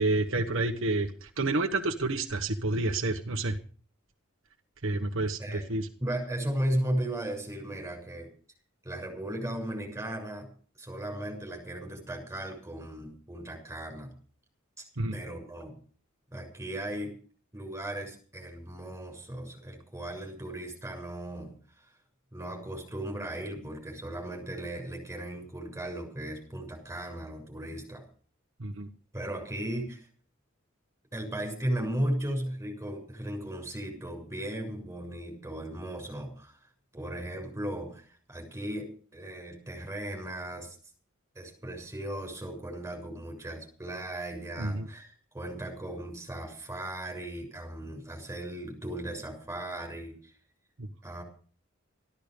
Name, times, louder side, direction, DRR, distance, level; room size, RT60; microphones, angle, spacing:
voice 1, 0.0-3.6 4.8-5.9 15.0-15.1 28.6-28.9 44.6-44.9 50.8-50.9, right 2 dB, 65° right, 5 dB, 1.4 m, -29 dB
voice 2, 6.0-8.3 8.8-10.5 10.8-14.1 15.1-15.7 16.3-17.1 17.5-21.5 22.3-28.1 29.1-30.0 31.1-36.5 36.9-40.8 41.4-50.3 51.0-51.2, right 1 dB, 15° right, 2 dB, 7.1 m, -36 dB
14.5 x 12.5 x 6.7 m, 0.41 s
head